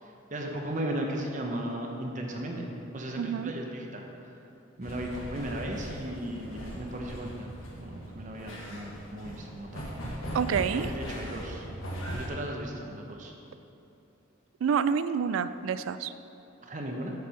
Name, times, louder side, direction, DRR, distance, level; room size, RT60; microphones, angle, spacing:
voice 1, 0.0-2.6 2.9-4.3 4.8-9.9 10.7-11.7 12.1-13.3 16.6-17.1, right 1 dB, 40° right, 1 dB, 0.9 m, -36 dB
voice 2, 3.2-3.5 10.3-10.9 14.6-16.1, right 7 dB, 80° right, 13 dB, 0.3 m, -28 dB
sound 1, 4.8-12.3, equal, 85° left, 1.5 m, -39 dB
8.2 x 4.8 x 5.7 m, 2.9 s
head